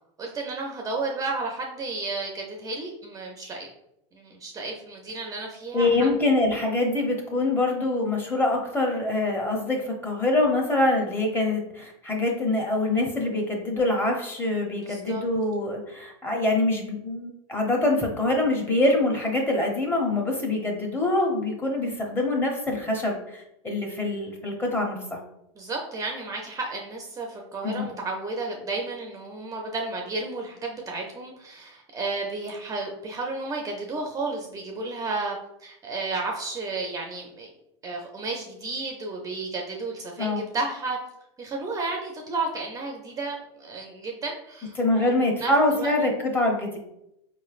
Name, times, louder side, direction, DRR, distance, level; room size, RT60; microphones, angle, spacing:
voice 1, 0.2-3.7 4.1-6.1 14.8-15.2 25.6-37.5 37.8-41.0 41.4-45.1 45.4-45.9, right 3 dB, 20° right, 1 dB, 0.5 m, -32 dB
voice 2, 5.7-25.2 27.6-27.9 40.2-40.4 44.8-46.8, left 2 dB, 15° left, 1 dB, 0.8 m, -25 dB
4.2 x 3.1 x 2.4 m, 0.80 s
supercardioid pair, 125°, 16 cm